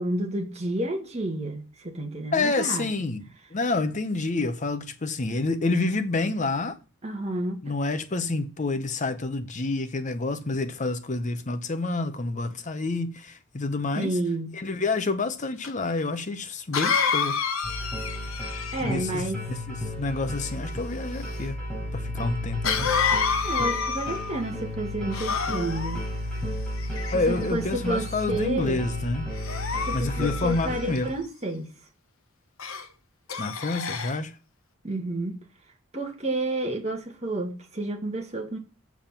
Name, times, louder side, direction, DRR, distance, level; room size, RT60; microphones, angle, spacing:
voice 1, 0.0-2.9 7.0-7.6 13.9-14.5 18.7-19.4 23.4-26.0 27.3-28.8 29.8-31.7 34.8-35.4 35.9-38.6, right 1 dB, 30° right, 1.6 m, -30 dB
voice 2, 2.3-6.8 7.6-14.2 14.5-17.4 18.8-21.6 21.9-22.9 27.1-29.3 29.9-31.1 33.4-34.4, left 3 dB, 35° left, 0.7 m, -28 dB
Cough, 15.6-15.7 16.7-19.1 22.6-24.4 25.1-26.0 26.8-27.4 28.1-28.4 29.3-31.0 32.6-32.9 33.3-34.2, left 6 dB, 80° left, 1.0 m, -28 dB
sound 1, 17.6-31.1, left 1 dB, 5° left, 4.2 m, -33 dB
7.3 x 7.2 x 5.7 m
head